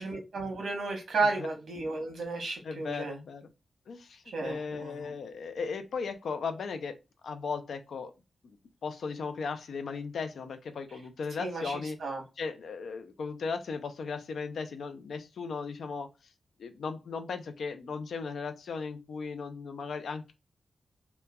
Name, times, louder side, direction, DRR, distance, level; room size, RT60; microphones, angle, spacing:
voice 1, 0.0-3.1 4.3-5.1 11.4-12.2, right 3 dB, 90° right, 1.0 m, -33 dB
voice 2, 2.6-3.5 3.9-7.0 7.2-8.1 8.4-8.6 8.8-12.0 12.4-16.1 16.6-20.3, left 5 dB, 85° left, 0.4 m, -36 dB
2.9 x 2.2 x 2.2 m
wide cardioid pair, 145°, 0 cm